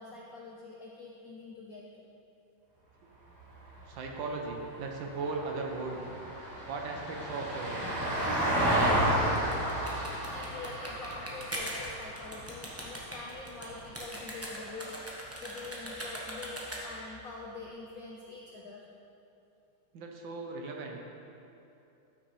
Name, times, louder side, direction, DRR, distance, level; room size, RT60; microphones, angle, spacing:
voice 1, 0.0-2.0 10.3-18.8, left 3 dB, 70° left, -2 dB, 0.8 m, -45 dB
Vehicle, 3.3-13.8 16.1-16.2, right 1 dB, 50° right, 2.2 m, -32 dB
voice 2, 3.9-6.0 6.7-7.8 8.3-9.6 19.9-21.0, right 3 dB, 65° right, 1 dB, 1.4 m, -38 dB
sound 1, 9.4-17.1, right 1 dB, 15° right, 0.6 m, -41 dB
12.5 x 6.3 x 3.2 m, 2.8 s
omnidirectional pair, 2.4 m